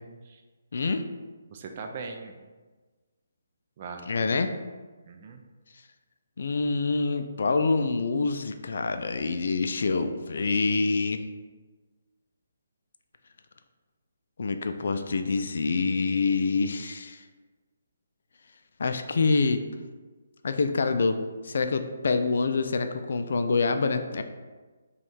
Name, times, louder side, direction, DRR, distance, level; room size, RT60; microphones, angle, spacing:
voice 1, 0.7-1.0 4.1-4.5 6.4-11.2 14.4-17.2 18.8-19.6 20.4-21.2 21.4-24.2, left 4 dB, 60° left, 8 dB, 0.3 m, -26 dB
voice 2, 1.5-2.4 3.8-4.5 5.1-5.4, right 4 dB, 40° right, 4 dB, 0.4 m, -40 dB
4.9 x 2.4 x 3.5 m, 1.3 s
figure-of-eight pair, 145°, 0 cm